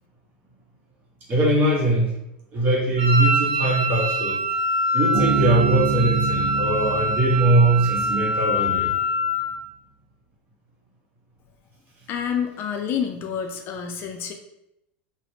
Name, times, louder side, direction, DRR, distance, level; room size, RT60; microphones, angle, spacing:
voice 1, 1.3-2.2 2.5-4.4 4.9-8.9, right 2 dB, 35° right, -3 dB, 1.2 m, -21 dB
Wind instrument woodwind instrument, 3.0-9.6, equal, 85° right, 0.6 m, -24 dB
Bass guitar, 5.1-8.6, right 4 dB, ahead, 1.0 m, -27 dB
voice 2, 12.1-14.3, left 7 dB, 45° left, 5 dB, 0.4 m, -28 dB
3.0 x 2.4 x 2.8 m, 0.84 s
supercardioid pair, 110°, 5 cm